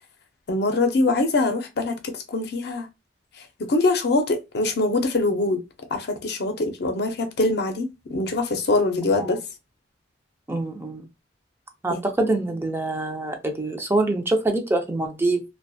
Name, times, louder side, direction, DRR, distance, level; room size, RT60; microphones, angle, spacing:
voice 1, 0.5-2.9 3.6-5.6 5.9-9.4 11.9-12.0, left 2 dB, 60° left, 0.5 m, -23 dB
voice 2, 10.5-11.0 11.8-15.4, right 2 dB, 15° right, 0.3 m, -25 dB
2.3 x 2.1 x 2.6 m
head